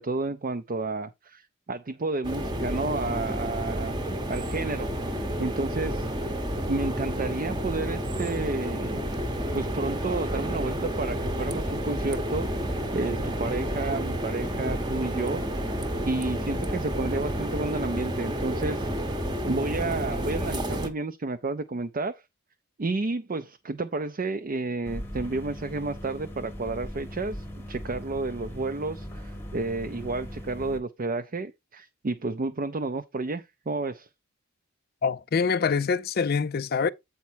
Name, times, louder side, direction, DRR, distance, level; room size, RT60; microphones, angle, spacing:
voice 1, 0.0-4.0 4.3-6.3 6.7-9.0 9.5-15.4 16.1-18.9 19.5-22.2 22.8-34.1, right 3 dB, 35° right, 0.4 m, -31 dB
sound 1, 2.2-20.9, equal, 20° right, 0.8 m, -30 dB
sound 2, 24.8-30.8, equal, 10° left, 1.0 m, -39 dB
voice 2, 35.0-36.9, left 5 dB, 45° left, 0.4 m, -25 dB
8.3 x 4.4 x 4.4 m
head